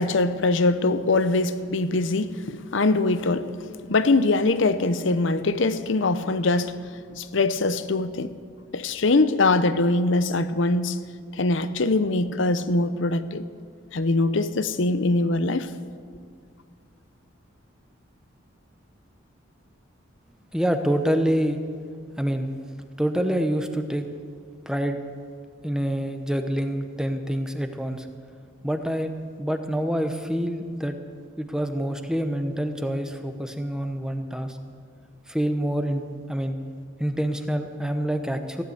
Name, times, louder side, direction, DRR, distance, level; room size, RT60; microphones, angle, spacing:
voice 1, 0.0-3.5 3.9-6.8 7.1-8.3 8.7-11.0 11.3-13.5 13.9-15.7, left 2 dB, 60° left, 0.7 m, -22 dB
voice 2, 20.5-21.6 22.2-22.5 23.0-24.0 24.7-25.0 25.6-28.1 28.6-29.1 29.4-30.9 31.4-34.6 35.3-36.6 37.0-38.6, equal, 5° right, 0.8 m, -26 dB
16.0 x 11.0 x 7.9 m
head